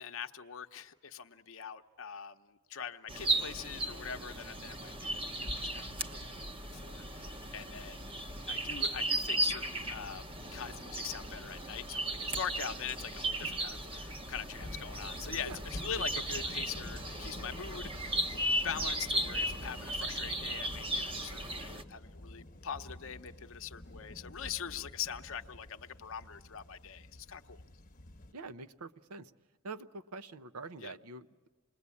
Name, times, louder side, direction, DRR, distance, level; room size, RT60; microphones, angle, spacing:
voice 1, 0.0-6.5 6.7-8.1 8.5-10.2 10.5-27.6 30.8-30.9, left 7 dB, 60° left, 7 dB, 0.8 m, -43 dB
sound 1, 3.1-21.8, right 1 dB, 25° right, 0.8 m, -36 dB
sound 2, 14.6-28.3, left 1 dB, 40° left, 0.9 m, -49 dB
voice 2, 28.3-29.3 29.6-31.5, right 3 dB, 90° right, 12 dB, 0.7 m, -45 dB
27.5 x 21.0 x 8.4 m, 1.4 s
head